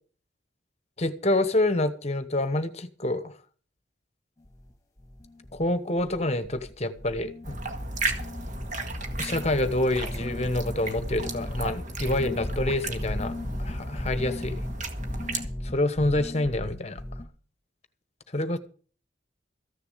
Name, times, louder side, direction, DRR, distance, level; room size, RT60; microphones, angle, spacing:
voice 1, 1.0-3.3 5.5-7.6 9.2-13.3 13.6-14.6 15.6-17.0 18.3-18.6, left 1 dB, 35° left, 1.1 m, -27 dB
sound 1, 4.4-4.7 5.0-5.7 6.0-6.7 7.0-17.2, left 1 dB, 20° left, 2.0 m, -36 dB
sound 2, 7.4-15.4, right 2 dB, 40° right, 1.9 m, -35 dB
14.5 x 6.9 x 8.2 m
head